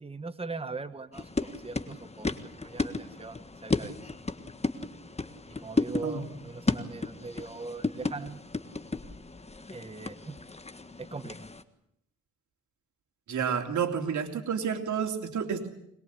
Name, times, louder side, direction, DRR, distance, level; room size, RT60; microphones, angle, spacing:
voice 1, 0.0-4.0 5.6-8.4 9.7-10.4 11.0-11.4, right 3 dB, 20° right, 11 dB, 1.2 m, -41 dB
sound 1, 1.1-11.6, left 3 dB, 20° left, 1.6 m, -34 dB
voice 2, 13.3-15.7, right 7 dB, 80° right, 5 dB, 3.2 m, -30 dB
22.5 x 21.5 x 8.3 m, 0.75 s
cardioid pair, 75°, 29 cm